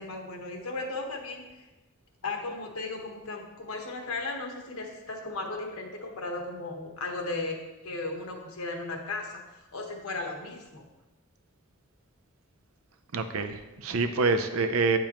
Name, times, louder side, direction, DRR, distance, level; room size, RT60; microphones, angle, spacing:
voice 1, 0.0-1.7 2.2-7.6 7.8-9.3 9.7-10.8, left 3 dB, 90° left, 2 dB, 1.2 m, -36 dB
voice 2, 13.1-15.0, right 4 dB, 75° right, 8 dB, 0.6 m, -26 dB
8.7 x 6.8 x 3.0 m, 1.1 s
head